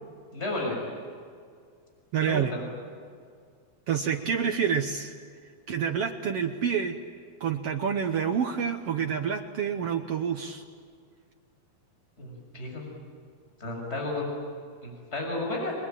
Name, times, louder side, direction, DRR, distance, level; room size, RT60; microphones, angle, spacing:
voice 1, 0.3-0.8 2.2-2.7 12.2-12.8 13.6-14.3 14.8-15.7, left 2 dB, 15° left, 0 dB, 6.5 m, -32 dB
voice 2, 2.1-2.5 3.9-5.1 5.7-7.0 7.4-10.6, right 7 dB, 75° right, 5 dB, 1.4 m, -28 dB
30.0 x 21.5 x 9.1 m, 2.1 s
omnidirectional pair, 4.3 m